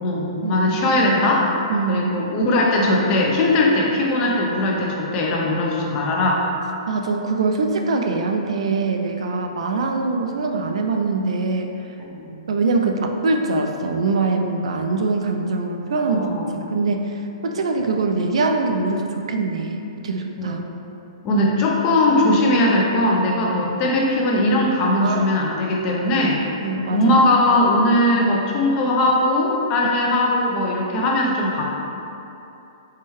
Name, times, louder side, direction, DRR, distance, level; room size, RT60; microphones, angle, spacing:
voice 1, 0.0-1.5 1.9-6.4 12.0-12.3 16.1-16.6 20.4-20.6 21.2-26.4 26.9-31.7, left 1 dB, 20° left, -2 dB, 0.4 m, -19 dB
voice 2, 1.7-2.0 6.9-11.7 12.5-16.3 16.7-20.6 25.0-25.3 26.6-27.2, right 3 dB, 75° right, 3 dB, 0.4 m, -23 dB
4.6 x 2.2 x 3.0 m, 2.9 s
hypercardioid pair, 170°, 3 cm